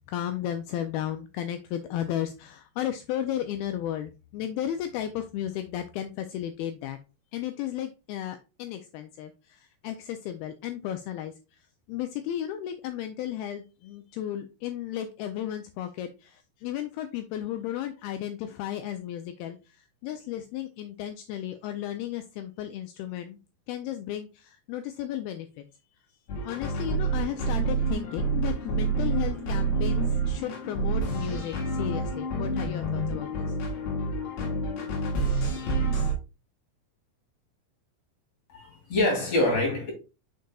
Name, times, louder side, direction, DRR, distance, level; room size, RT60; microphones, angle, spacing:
voice 1, 0.1-7.0 7.3-11.3 11.9-23.4 23.7-25.7 26.4-33.5, left 11 dB, 90° left, 2.1 m, -34 dB
sound 1, 26.3-36.1, right 3 dB, 70° left, 3.4 m, -28 dB
voice 2, 38.5-39.9, left 1 dB, 45° left, 3.2 m, -25 dB
6.6 x 6.5 x 2.3 m
omnidirectional pair, 4.9 m